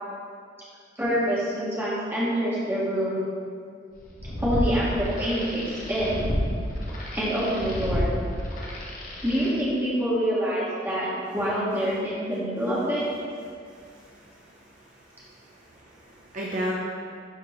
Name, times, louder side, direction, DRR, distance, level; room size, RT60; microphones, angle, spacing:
voice 1, 1.0-3.2 4.4-6.3 7.1-8.1 9.2-13.0, equal, 10° right, -9 dB, 1.9 m, -26 dB
sound 1, 4.0-9.5, equal, 50° left, 1.2 m, -31 dB
voice 2, 13.7-14.6 15.5-16.7, equal, 45° right, -4 dB, 0.7 m, -35 dB
11.5 x 4.2 x 3.2 m, 2.2 s
head